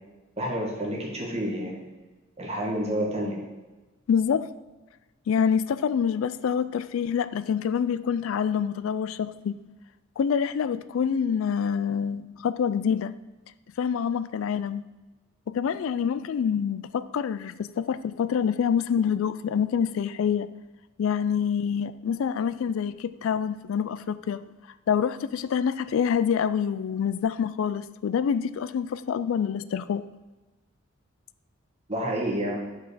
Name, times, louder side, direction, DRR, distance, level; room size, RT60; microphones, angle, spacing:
voice 1, 0.4-1.8 2.4-3.4 31.9-32.6, equal, 30° right, 1.7 m, -29 dB
voice 2, 4.1-4.5 5.3-9.6 10.2-13.2 13.8-14.8 15.5-20.5 21.0-24.4 24.9-30.0, left 7 dB, 70° left, 0.3 m, -26 dB
5.9 x 5.3 x 6.3 m
head